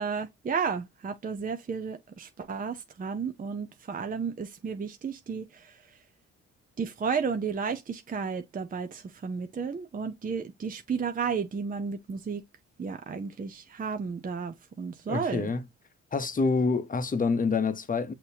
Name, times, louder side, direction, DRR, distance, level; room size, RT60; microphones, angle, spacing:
voice 1, 0.0-6.0 6.8-12.4 12.8-15.5, right 5 dB, 30° right, 0.6 m, -33 dB
voice 2, 15.1-15.6 16.1-18.1, left 4 dB, 25° left, 0.9 m, -27 dB
6.7 x 2.9 x 2.8 m
cardioid pair, 90°, 30 cm